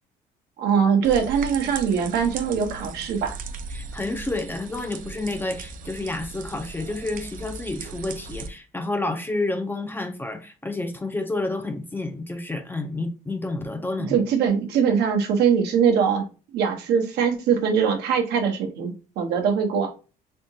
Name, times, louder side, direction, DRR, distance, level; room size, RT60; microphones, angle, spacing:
voice 1, 0.6-3.4 14.1-16.2 16.5-19.9, right 7 dB, 75° right, 0.9 m, -22 dB
sound 1, 1.0-8.5, right 5 dB, 55° right, 0.5 m, -37 dB
voice 2, 3.7-14.2, left 2 dB, 10° left, 0.5 m, -30 dB
3.5 x 2.8 x 2.7 m
cardioid pair, 110°, 17 cm